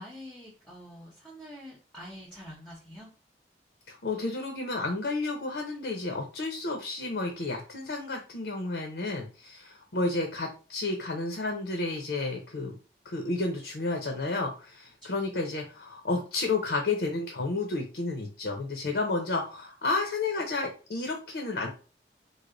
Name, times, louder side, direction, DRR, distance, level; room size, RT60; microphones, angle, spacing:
voice 1, 0.0-3.1 15.0-15.2, equal, 5° left, -4 dB, 0.8 m, -46 dB
voice 2, 3.9-12.7 13.0-21.7, left 3 dB, 70° left, 2 dB, 0.7 m, -31 dB
3.3 x 2.1 x 3.7 m, 0.35 s
head